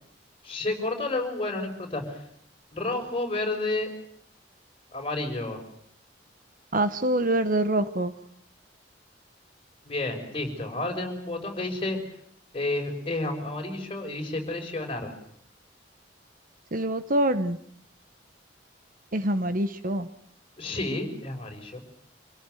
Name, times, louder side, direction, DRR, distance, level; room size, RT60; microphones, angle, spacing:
voice 1, 0.4-2.2 2.7-3.9 4.9-5.6 9.9-12.0 12.5-15.1 20.6-21.8, left 2 dB, 30° left, 2 dB, 6.1 m, -30 dB
voice 2, 6.7-8.1 16.7-17.6 19.1-20.1, right 1 dB, 50° right, 11 dB, 1.2 m, -25 dB
27.0 x 17.5 x 9.4 m, 0.69 s
head